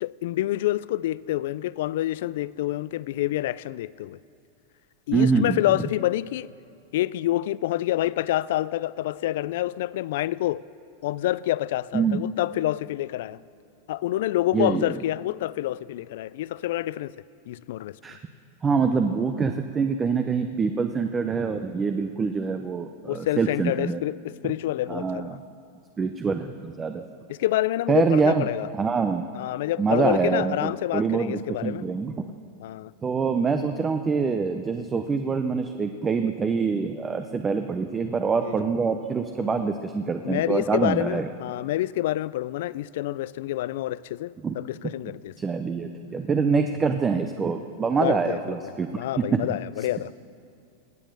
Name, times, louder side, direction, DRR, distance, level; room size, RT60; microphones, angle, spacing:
voice 1, 0.0-4.2 5.1-6.5 6.9-10.6 11.0-13.4 13.9-17.1 17.5-17.9 23.1-25.4 27.3-28.7 29.3-31.8 32.6-32.9 38.4-38.7 39.4-39.7 40.2-45.3 48.0-48.6 48.9-50.1, left 14 dB, 70° left, 0.3 m, -27 dB
voice 2, 5.1-5.6 11.9-12.2 14.5-15.0 18.0-18.2 18.6-24.0 24.4-24.5 24.9-25.4 26.0-27.0 27.9-28.5 28.7-29.2 29.8-32.3 33.0-41.3 44.4-44.5 45.4-48.9 49.3-49.6, right 5 dB, 20° right, 0.6 m, -25 dB
17.5 x 7.4 x 6.7 m
hypercardioid pair, 120°, 0 cm